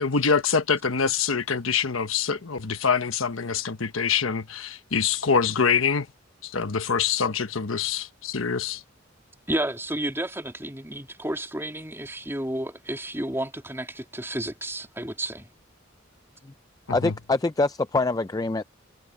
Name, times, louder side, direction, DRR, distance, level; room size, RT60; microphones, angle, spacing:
voice 1, 0.0-6.1 6.4-8.8 16.9-17.1, left 6 dB, 85° left, 1.1 m, -25 dB
voice 2, 9.5-15.5, right 1 dB, 10° right, 2.9 m, -31 dB
voice 3, 16.9-18.6, left 3 dB, 20° left, 0.4 m, -24 dB
head